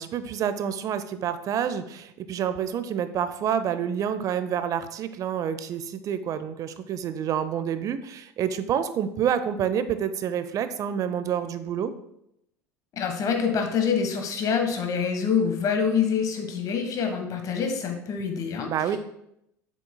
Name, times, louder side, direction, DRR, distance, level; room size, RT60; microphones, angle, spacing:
voice 1, 0.0-11.9 18.7-19.0, right 8 dB, 45° right, 12 dB, 0.6 m, -28 dB
voice 2, 13.0-19.0, left 6 dB, 45° left, 4 dB, 1.3 m, -26 dB
7.6 x 6.1 x 2.2 m, 0.79 s
hypercardioid pair, 75°, 8 cm